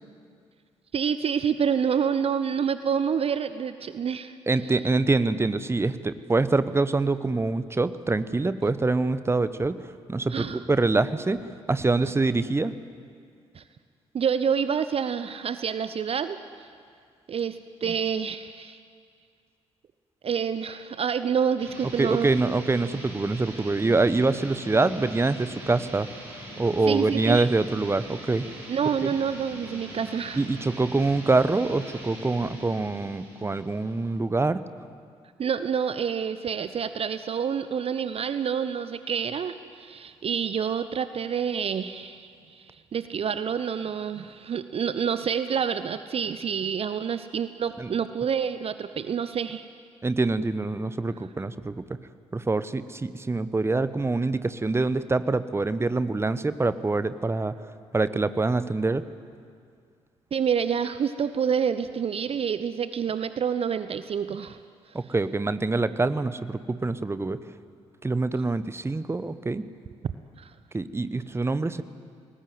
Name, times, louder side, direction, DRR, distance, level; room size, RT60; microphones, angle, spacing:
voice 1, 0.9-4.4 10.3-10.6 13.5-13.6 14.1-16.7 17.3-18.8 20.2-22.3 26.8-27.5 28.7-30.4 35.4-49.6 60.3-64.6 64.9-65.0 70.4-70.5, right 7 dB, 40° right, 12 dB, 0.8 m, -28 dB
voice 2, 4.5-11.4 11.7-12.7 22.0-26.1 26.6-28.5 29.0-29.1 30.4-34.6 47.8-47.9 50.0-52.0 52.3-57.5 57.9-59.0 64.9-67.4 68.0-69.7 70.7-71.8, right 3 dB, 15° right, 14 dB, 1.0 m, -25 dB
sound 1, 21.6-34.1, right 1 dB, 75° right, 4.5 m, -42 dB
28.0 x 19.5 x 8.0 m, 2.2 s
figure-of-eight pair, 40°, 15 cm